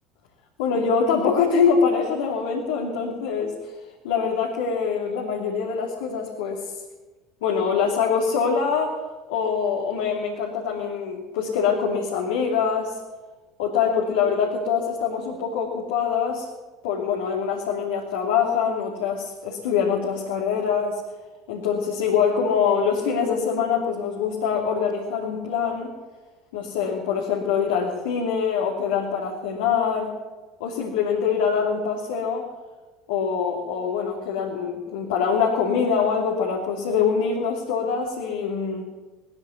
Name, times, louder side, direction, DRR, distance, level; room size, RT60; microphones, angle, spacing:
voice 1, 0.6-3.8 4.0-6.7 7.4-8.9 9.3-13.0 13.6-16.5 16.8-21.0 21.5-25.9 26.5-30.1 30.6-32.5 33.1-38.8, left 6 dB, 70° left, 0 dB, 2.9 m, -24 dB
20.0 x 14.0 x 9.6 m, 1.2 s
figure-of-eight pair, 65°, 0 cm